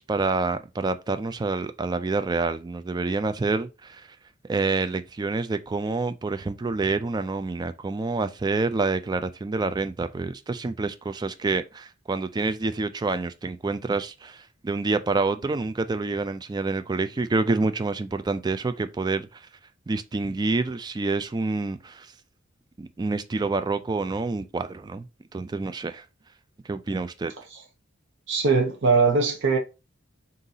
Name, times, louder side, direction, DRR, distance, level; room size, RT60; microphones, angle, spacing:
voice 1, 0.0-4.2 4.4-19.5 19.9-22.1 22.8-25.1 25.3-26.0 26.7-27.3, right 3 dB, 20° right, 0.3 m, -27 dB
voice 2, 28.3-29.6, right 4 dB, 65° right, 0.8 m, -21 dB
3.8 x 2.7 x 3.9 m
head